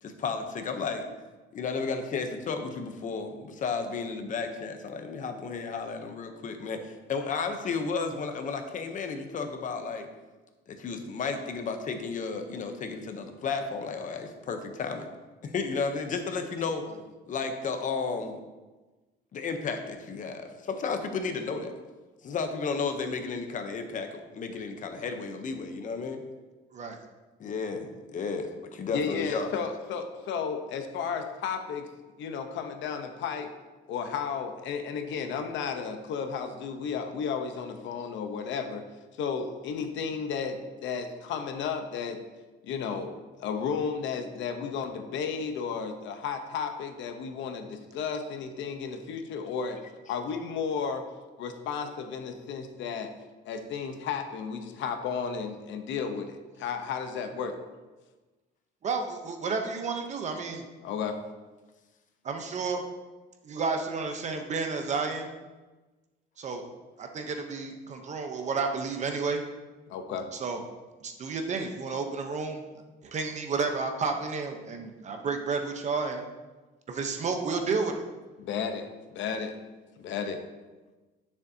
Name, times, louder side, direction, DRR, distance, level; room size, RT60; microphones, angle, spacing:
voice 1, 0.0-1.1 1.5-10.1 10.7-15.1 15.4-16.9 17.3-18.4 19.3-21.7 22.2-26.2 27.4-29.5, left 4 dB, 40° left, 6 dB, 0.8 m, -33 dB
voice 2, 28.9-31.9 32.2-33.5 33.9-38.8 39.2-42.2 42.6-49.8 50.1-51.0 51.4-53.1 53.4-57.6 60.8-61.2 69.9-70.3 78.4-79.5 80.0-80.4, left 6 dB, 70° left, 6 dB, 0.9 m, -33 dB
voice 3, 58.8-60.7 62.2-62.8 63.4-65.3 66.4-66.7 67.0-69.4 70.3-70.6 71.0-72.6 73.0-76.2 76.9-78.1, right 4 dB, 35° right, 5 dB, 0.8 m, -31 dB
9.5 x 6.9 x 2.8 m, 1.2 s
cardioid pair, 155°, 20 cm